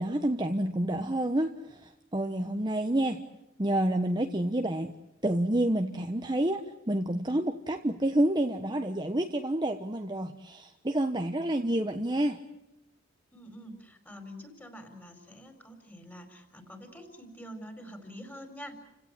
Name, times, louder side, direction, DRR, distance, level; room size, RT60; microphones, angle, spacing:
voice 1, 0.0-3.2 3.6-4.9 5.2-12.4, right 1 dB, 20° right, 5 dB, 1.1 m, -29 dB
voice 2, 13.3-18.8, equal, 10° left, 6 dB, 4.6 m, -46 dB
30.0 x 17.0 x 10.0 m, 0.89 s
head